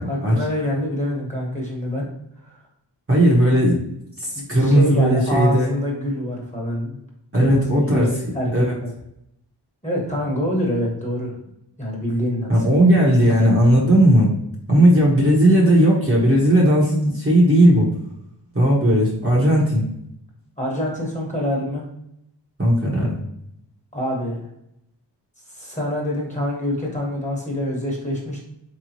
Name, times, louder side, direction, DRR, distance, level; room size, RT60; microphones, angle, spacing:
voice 1, 0.0-2.1 2.4-2.5 4.3-7.0 7.3-8.9 9.8-11.3 11.8-12.5 20.6-21.8 23.9-24.4 25.5-28.4, left 1 dB, 15° left, -2 dB, 1.4 m, -25 dB
voice 2, 3.1-3.8 4.2-5.7 7.3-8.1 8.5-8.7 12.5-14.3 14.7-17.9 18.5-19.8 22.6-23.2, right 1 dB, 30° right, -4 dB, 1.1 m, -16 dB
3.4 x 3.1 x 2.9 m, 0.77 s
cardioid pair, 40°, 44 cm